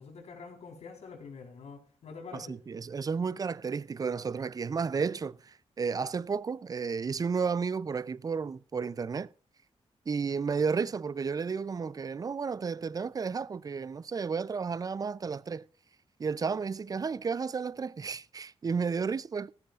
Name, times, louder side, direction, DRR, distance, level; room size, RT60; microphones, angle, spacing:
voice 1, 0.0-2.6, left 5 dB, 80° left, 4.1 m, -46 dB
voice 2, 2.3-9.3 10.1-15.6 16.2-19.5, right 5 dB, 35° right, 0.5 m, -32 dB
16.5 x 14.5 x 2.4 m
wide cardioid pair, 110°, 11 cm